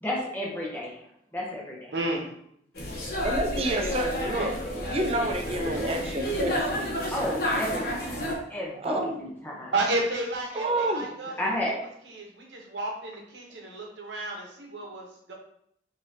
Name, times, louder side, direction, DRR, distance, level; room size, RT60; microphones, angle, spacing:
voice 1, 0.0-1.0 1.3-1.9 2.8-2.9 7.1-8.2 8.5-9.7 11.4-11.8, left 1 dB, 10° left, -3 dB, 0.7 m, -32 dB
voice 2, 1.9-2.2 9.7-11.6 12.1-15.3, right 2 dB, 80° right, -1 dB, 0.9 m, -32 dB
sound 1, 2.7-8.3, equal, 55° left, 1.0 m, -30 dB
voice 3, 3.2-6.9 8.7-9.2 10.5-11.1, right 1 dB, 35° right, 3 dB, 0.5 m, -29 dB
5.3 x 2.7 x 2.8 m, 0.70 s
head